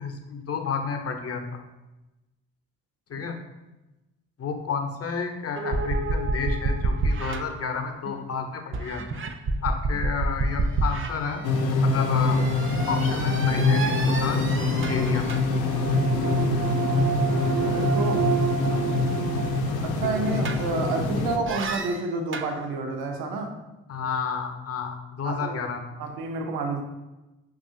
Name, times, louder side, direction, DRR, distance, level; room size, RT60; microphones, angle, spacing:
voice 1, 0.0-1.6 3.1-3.4 4.4-9.2 9.6-11.4 11.8-12.5 12.9-14.5 14.8-15.3 23.9-25.9, left 5 dB, 40° left, 5 dB, 0.7 m, -31 dB
sound 1, 5.6-8.3 8.7-21.0 21.5-22.5, right 4 dB, 35° right, 0.5 m, -30 dB
sound 2, 11.4-21.4, left 3 dB, 75° left, 0.6 m, -24 dB
voice 2, 17.6-18.2 19.6-23.6 25.2-25.6 26.0-26.8, right 3 dB, 80° right, 4 dB, 0.6 m, -29 dB
5.3 x 2.5 x 2.6 m, 1.0 s
hypercardioid pair, 40°, 37 cm